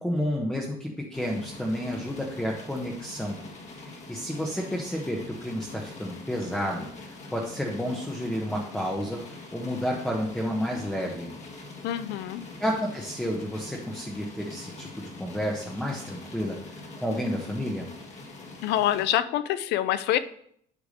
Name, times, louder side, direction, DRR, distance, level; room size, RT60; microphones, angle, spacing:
voice 1, 0.0-3.4 3.8-6.9 7.3-9.2 9.5-11.3 12.6-16.5 17.0-17.9, equal, 5° left, -2 dB, 1.1 m, -30 dB
sound 1, 1.1-19.0, left 2 dB, 40° left, 1.9 m, -44 dB
voice 2, 11.8-12.5 18.6-20.2, left 12 dB, 85° left, 14 dB, 0.5 m, -26 dB
8.4 x 3.6 x 6.5 m, 0.68 s
cardioid pair, 110°, 17 cm